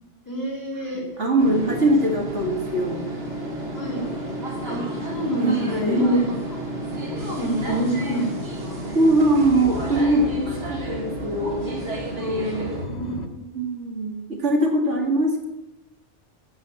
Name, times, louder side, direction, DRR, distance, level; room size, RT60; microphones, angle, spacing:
voice 1, 0.2-1.0 1.5-1.7 3.7-4.1 4.7-4.8 5.1-6.2 7.1-9.2 12.9-13.4, equal, 15° left, -3 dB, 4.0 m, -27 dB
voice 2, 0.9-3.0 5.4-6.1 8.9-11.8 12.2-12.8 13.5-15.5, right 1 dB, 80° right, 2 dB, 2.3 m, -22 dB
sound 1, 1.4-12.9, right 2 dB, 60° right, 2.4 m, -32 dB
sound 2, 2.2-13.3, left 3 dB, 65° left, 1.4 m, -37 dB
11.5 x 7.7 x 7.5 m, 0.98 s
omnidirectional pair, 1.2 m